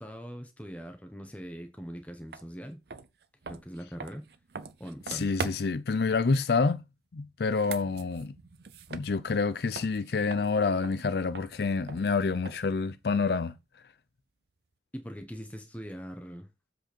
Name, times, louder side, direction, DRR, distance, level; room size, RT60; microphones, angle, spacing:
voice 1, 0.0-2.8 3.5-4.2 4.8-5.3 14.9-16.5, equal, 10° left, 1.2 m, -41 dB
sound 1, 2.3-2.4 2.9-5.9 7.4-9.5 9.7-12.8, right 5 dB, 65° right, 0.6 m, -42 dB
voice 2, 5.1-6.8 7.1-8.3 8.9-13.5, left 4 dB, 60° left, 0.5 m, -28 dB
7.6 x 5.0 x 4.5 m
head